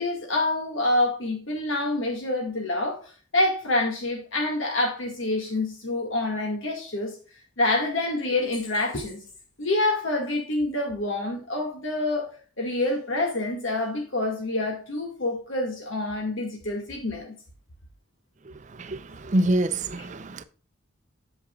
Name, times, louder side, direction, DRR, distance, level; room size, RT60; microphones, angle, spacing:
voice 1, 0.0-3.0 3.3-7.2 7.6-9.2 9.6-12.3 12.6-17.3, left 2 dB, 75° left, 1.9 m, -27 dB
voice 2, 18.8-20.4, right 1 dB, 35° right, 0.5 m, -26 dB
8.4 x 7.1 x 2.3 m
head